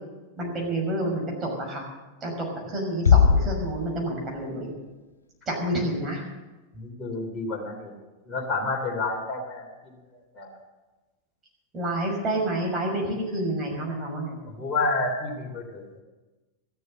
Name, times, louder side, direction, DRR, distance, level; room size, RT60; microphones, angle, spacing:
voice 1, 0.4-1.9 2.2-4.7 5.5-6.3 11.7-14.4, right 1 dB, 20° right, -1 dB, 6.1 m, -29 dB
Bass drum, 3.1-4.5, left 6 dB, 75° left, 0.6 m, -20 dB
voice 2, 6.8-7.9 8.3-9.6 10.4-10.5 14.5-16.0, left 3 dB, 20° left, -2 dB, 3.6 m, -29 dB
14.5 x 13.5 x 6.6 m, 1.2 s
figure-of-eight pair, 90°, 0 cm